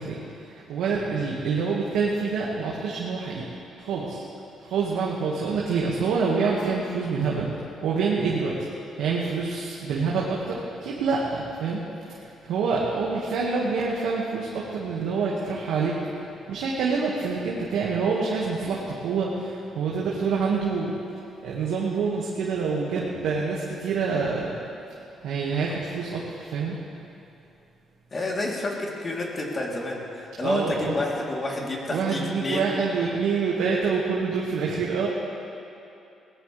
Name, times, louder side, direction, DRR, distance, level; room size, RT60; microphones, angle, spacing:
voice 1, 0.0-3.5 3.8-4.3 4.6-8.7 9.0-16.0 16.5-20.9 21.4-24.6 25.2-26.8 30.4-31.0 31.9-35.1, right 5 dB, 85° right, -4 dB, 1.9 m, -27 dB
voice 2, 28.1-32.8, left 2 dB, 35° left, -3 dB, 3.4 m, -29 dB
20.5 x 18.0 x 3.4 m, 2.8 s
cardioid pair, 90°, 0 cm